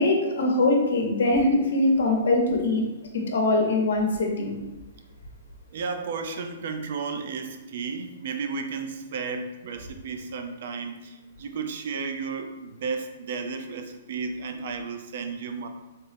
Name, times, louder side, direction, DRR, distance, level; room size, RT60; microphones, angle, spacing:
voice 1, 0.0-2.8 3.1-4.6, left 2 dB, 80° left, 1 dB, 0.8 m, -22 dB
voice 2, 5.7-15.7, right 5 dB, 55° right, 6 dB, 0.4 m, -33 dB
3.6 x 2.0 x 4.1 m, 1.1 s
hypercardioid pair, 160°, 0 cm